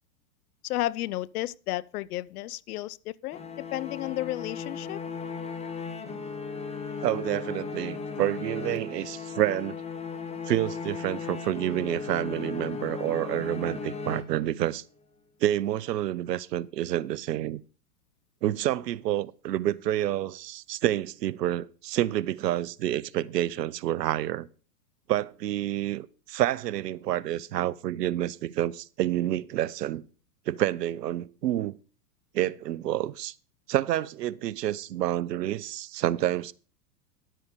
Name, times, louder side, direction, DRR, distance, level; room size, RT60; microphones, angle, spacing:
voice 1, 0.6-3.4 3.7-5.0, left 16 dB, 70° left, 0.6 m, -32 dB
sound 1, 3.3-14.8, left 5 dB, 15° left, 1.3 m, -36 dB
voice 2, 7.0-9.8 10.5-14.8 15.4-17.6 18.4-24.5 25.1-30.0 30.5-31.8 32.3-33.3 33.7-36.5, right 13 dB, 85° right, 0.7 m, -28 dB
11.0 x 7.7 x 5.0 m
hypercardioid pair, 120°, 47 cm